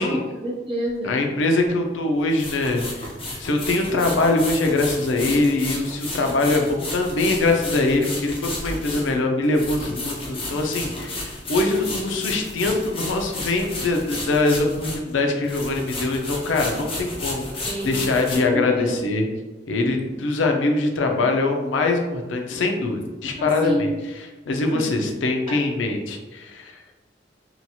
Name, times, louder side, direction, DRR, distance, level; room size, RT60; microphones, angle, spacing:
voice 1, 0.0-1.2 17.7-18.0 18.5-18.9 23.4-23.9 24.7-25.0 25.5-25.6, right 1 dB, 30° right, -4 dB, 0.7 m, -28 dB
sound 1, 0.9-1.0 2.3-15.2 15.4-18.4, left 2 dB, 30° left, 0.7 m, -32 dB
voice 2, 1.0-3.1 3.4-19.3 19.7-23.9 24.5-26.8, left 2 dB, 85° left, 3 dB, 0.5 m, -23 dB
2.8 x 2.3 x 2.8 m, 1.1 s
head